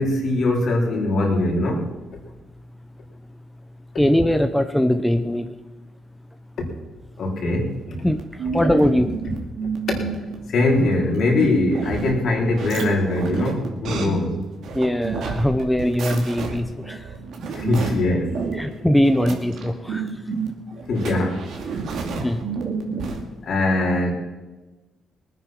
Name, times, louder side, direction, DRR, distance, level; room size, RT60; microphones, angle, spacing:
voice 1, 0.0-1.9 7.2-8.0 9.9-10.0 10.5-14.4 17.5-18.4 20.9-21.4 23.4-24.1, left 2 dB, 60° left, 0 dB, 4.1 m, -21 dB
voice 2, 4.0-5.5 8.0-8.2 8.5-9.1 14.7-17.0 18.6-20.0 22.2-22.4, equal, 5° left, 8 dB, 0.9 m, -20 dB
sound 1, 7.8-23.2, right 5 dB, 70° right, 2.6 m, -30 dB
20.0 x 9.4 x 6.1 m, 1.1 s
cardioid pair, 90°, 0 cm